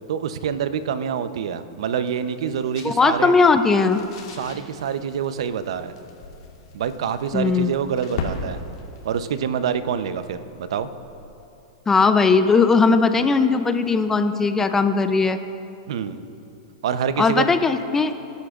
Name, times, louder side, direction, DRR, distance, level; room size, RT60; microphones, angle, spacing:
voice 1, 0.1-3.3 4.3-6.0 6.7-8.6 9.0-10.9 15.9-16.2 16.8-17.5, right 8 dB, 75° right, 12 dB, 0.7 m, -26 dB
sound 1, 0.8-11.4, left 4 dB, 70° left, 2.9 m, -39 dB
voice 2, 2.8-4.1 7.3-7.7 11.9-15.4 17.2-18.1, left 4 dB, 15° left, 9 dB, 0.5 m, -18 dB
24.0 x 11.5 x 2.5 m, 2.7 s
supercardioid pair, 140°, 3 cm